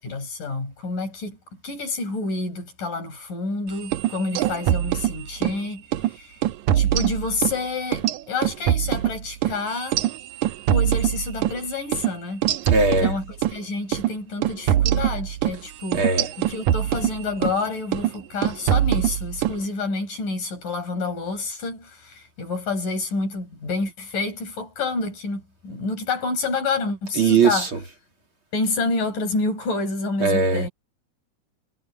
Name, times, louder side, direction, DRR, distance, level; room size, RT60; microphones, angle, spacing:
voice 1, 0.0-1.4 1.6-5.8 6.1-6.4 6.7-10.0 10.7-12.5 13.0-16.1 16.5-27.7 28.5-30.7, left 3 dB, 85° left, 8.1 m, -28 dB
sound 1, 3.8-5.6 5.9-6.1 6.4-7.6 7.9-11.6 11.9-12.1 12.4-13.6 13.9-14.1 14.4-17.6 17.9-18.2 18.4-19.6, right 12 dB, 75° right, 2.3 m, -23 dB
voice 2, 12.7-13.2 15.9-16.3 27.2-27.8 30.2-30.7, right 4 dB, 40° right, 3.2 m, -20 dB
omnidirectional pair, 3.6 m